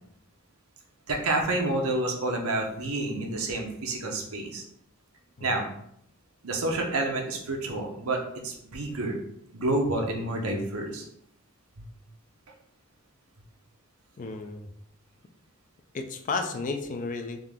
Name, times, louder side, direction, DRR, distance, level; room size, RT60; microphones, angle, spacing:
voice 1, 1.1-4.6 5.4-5.7 6.4-9.2 9.5-11.0 11.8-11.9, right 2 dB, 80° right, 1 dB, 0.8 m, -29 dB
voice 2, 14.2-14.7 15.9-17.4, left 3 dB, 35° left, 5 dB, 0.4 m, -33 dB
3.7 x 2.8 x 3.5 m, 0.72 s
head